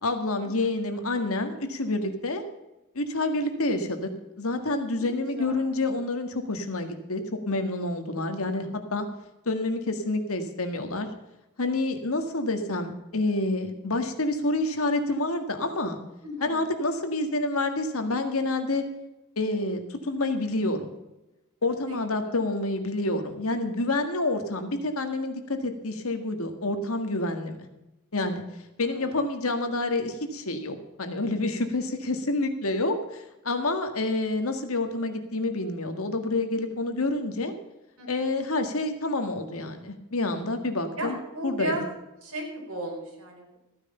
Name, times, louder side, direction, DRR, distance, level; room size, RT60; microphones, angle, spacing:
voice 1, 0.0-2.4 3.0-4.1 4.4-9.1 9.5-11.1 11.6-16.0 16.4-18.8 19.4-20.9 21.6-27.6 28.1-28.4 28.8-37.5 38.1-41.8, left 2 dB, 70° left, 7 dB, 1.8 m, -28 dB
voice 2, 4.9-5.6 16.2-16.6 21.9-22.0 28.9-29.3 38.0-38.1 41.0-41.8 42.2-43.6, right 1 dB, 70° right, 0 dB, 4.6 m, -35 dB
15.0 x 9.7 x 5.5 m, 0.97 s
head